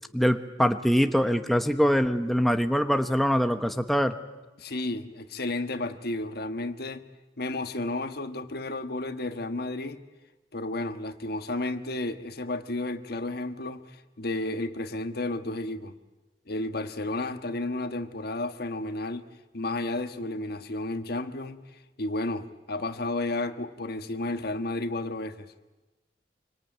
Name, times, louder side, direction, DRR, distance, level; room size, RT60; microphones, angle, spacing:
voice 1, 0.1-4.2, equal, ahead, 1.0 m, -23 dB
voice 2, 4.6-7.0 7.4-10.0 10.5-13.8 14.2-16.0 16.5-19.3 19.5-21.6 22.0-25.5, left 2 dB, 60° left, 1.4 m, -32 dB
25.5 x 25.0 x 9.3 m
head